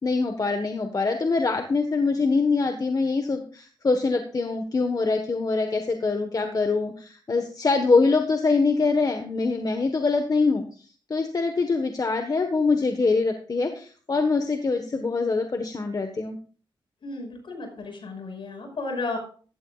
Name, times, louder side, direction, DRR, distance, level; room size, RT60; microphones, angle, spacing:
voice 1, 0.0-10.6 11.1-16.4, left 4 dB, 45° left, 5 dB, 1.4 m, -24 dB
voice 2, 17.0-19.2, left 3 dB, 70° left, 3 dB, 5.5 m, -34 dB
15.0 x 12.5 x 2.5 m, 0.42 s
cardioid pair, 75°, 9 cm